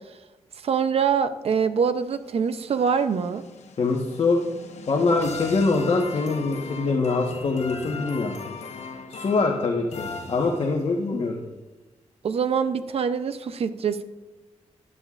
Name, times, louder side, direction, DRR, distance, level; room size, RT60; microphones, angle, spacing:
voice 1, 0.6-3.4 12.2-14.0, right 6 dB, 55° right, 11 dB, 0.7 m, -24 dB
sound 1, 2.0-10.9, left 4 dB, 70° left, 1.0 m, -39 dB
voice 2, 3.8-4.4 4.9-8.4 9.1-11.4, left 3 dB, 50° left, 0 dB, 1.2 m, -24 dB
16.0 x 11.0 x 2.5 m, 1.2 s
wide cardioid pair, 120°, 12 cm